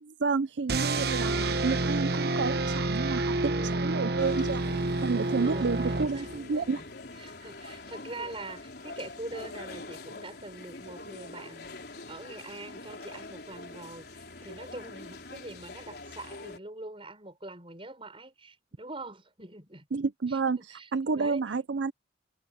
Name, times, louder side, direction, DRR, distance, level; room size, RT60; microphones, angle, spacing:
voice 1, 0.0-4.6 5.0-6.8 19.9-21.9, right 4 dB, 80° right, 0.6 m, -30 dB
sound 1, 0.7-6.6, right 2 dB, 60° right, 1.0 m, -29 dB
voice 2, 1.2-1.7 3.4-4.2 5.4-5.7 6.1-6.9 7.2-11.8 12.1-19.9 20.3-21.4, right 2 dB, 30° right, 6.0 m, -44 dB
sound 2, 4.2-16.6, left 2 dB, 60° left, 4.4 m, -44 dB
head